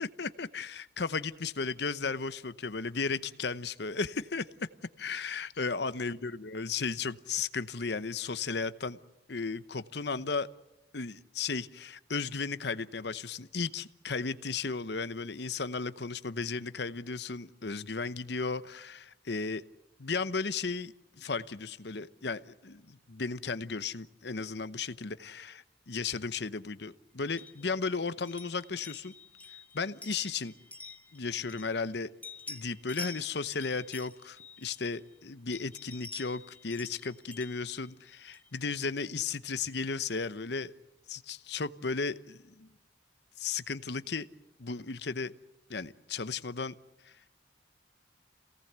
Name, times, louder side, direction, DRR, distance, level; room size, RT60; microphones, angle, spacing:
voice 1, 0.0-4.5 5.0-9.0 9.3-10.5 10.9-19.6 20.0-29.1 29.7-30.5 31.1-32.1 32.5-40.7 41.1-42.7 43.4-44.3 44.6-45.3 45.7-46.8 47.0-47.1, left 4 dB, 60° left, 14 dB, 0.9 m, -35 dB
sound 1, 27.3-31.9 32.2-35.1 35.5-38.6, left 3 dB, 10° left, 0.9 m, -48 dB
27.0 x 18.0 x 8.1 m, 0.95 s
head